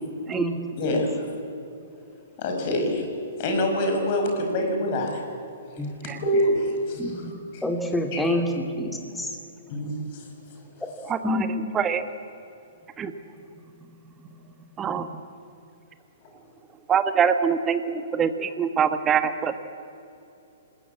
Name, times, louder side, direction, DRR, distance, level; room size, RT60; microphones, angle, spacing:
voice 1, 0.8-1.3 2.4-3.0 3.4-5.2 6.2-7.3 7.5-7.6 8.1-8.2 9.7-10.3, left 1 dB, 40° left, 3 dB, 5.8 m, -25 dB
voice 2, 7.0-7.3 7.6-9.3 11.2-11.5, left 1 dB, 5° left, 3 dB, 2.8 m, -27 dB
voice 3, 11.1-11.5 11.7-12.0 13.0-13.1 14.8-15.2 16.9-19.6, right 7 dB, 20° right, 10 dB, 1.5 m, -24 dB
26.5 x 20.5 x 8.5 m, 2.8 s
figure-of-eight pair, 115°, 0 cm